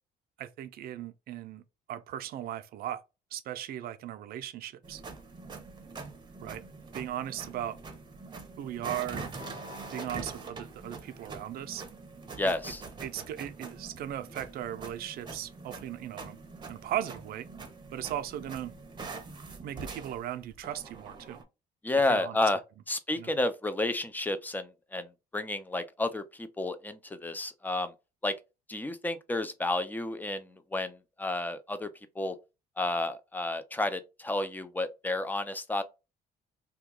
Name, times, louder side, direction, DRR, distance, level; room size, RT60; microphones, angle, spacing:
voice 1, 0.4-1.6 1.9-3.0 3.3-5.0 6.4-6.6 6.9-7.8 8.6-9.3 9.9-11.8 12.4-12.5 13.0-16.4 16.7-17.5 17.9-18.7 19.6-21.4 22.1-22.4 23.1-23.3, right 11 dB, 65° right, 0.5 m, -37 dB
sound 1, 4.8-21.4, right 3 dB, 25° right, 0.7 m, -44 dB
voice 2, 12.4-12.8 21.8-22.6 22.9-27.9 28.2-28.3 28.7-31.9 32.2-32.4 32.8-35.8, left 2 dB, 10° left, 0.4 m, -31 dB
2.8 x 2.3 x 3.6 m
cardioid pair, 110°, 17 cm